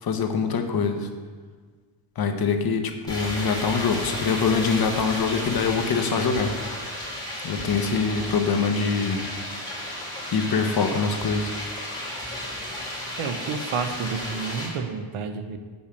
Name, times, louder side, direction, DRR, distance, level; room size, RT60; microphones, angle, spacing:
voice 1, 0.0-1.1 2.2-6.7 7.4-9.2 10.3-11.5, left 5 dB, 50° left, 5 dB, 0.8 m, -24 dB
sound 1, 3.1-14.7, left 1 dB, 10° left, 2.5 m, -33 dB
voice 2, 13.2-15.6, right 5 dB, 85° right, 8 dB, 0.9 m, -30 dB
6.7 x 5.5 x 6.8 m, 1.5 s
wide cardioid pair, 155°, 48 cm